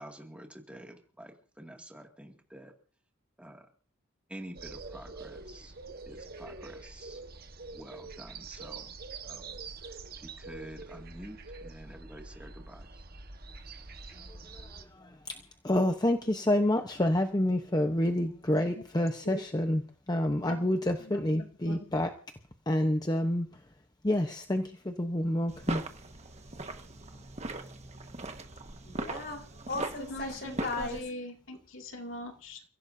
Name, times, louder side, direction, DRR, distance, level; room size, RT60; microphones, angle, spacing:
voice 1, 0.0-2.7 3.4-3.7 4.3-5.7 6.1-7.2 7.7-8.9 9.2-13.0, right 1 dB, 5° right, 2 dB, 2.2 m, -48 dB
sound 1, 4.5-14.8, right 4 dB, 45° right, 1.3 m, -45 dB
voice 2, 14.3-19.8 20.1-22.1 22.7-23.5 24.0-25.8, left 1 dB, 20° left, 5 dB, 0.9 m, -28 dB
voice 3, 21.0-21.8 30.0-32.6, left 1 dB, 70° left, 3 dB, 2.4 m, -41 dB
sound 2, 25.5-31.0, right 2 dB, 30° right, 1.4 m, -39 dB
voice 4, 28.8-31.0, left 3 dB, 50° left, 2 dB, 4.5 m, -37 dB
30.0 x 16.0 x 2.7 m, 0.40 s
head